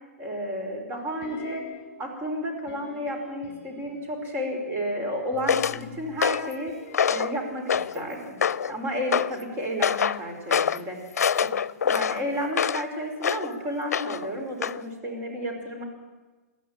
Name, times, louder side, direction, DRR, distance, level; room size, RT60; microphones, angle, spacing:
voice 1, 0.2-1.6 2.0-6.7 7.1-8.4 8.7-11.0 11.4-11.5 11.8-15.8, equal, 25° right, 1 dB, 5.3 m, -32 dB
sound 1, 1.2-2.0 2.7-4.3 5.3-9.5 9.8-9.9, left 7 dB, 30° left, 6.6 m, -48 dB
sound 2, 5.5-5.8 6.2-6.5 6.9-7.3 7.7-8.0 8.4-8.7 9.1-9.3 9.8-10.2 10.5-10.8 11.2-12.9 13.2-13.5 13.9-14.3 14.6-14.8, left 7 dB, 80° left, 0.6 m, -25 dB
20.5 x 13.5 x 9.1 m, 1.2 s
hypercardioid pair, 135°, 8 cm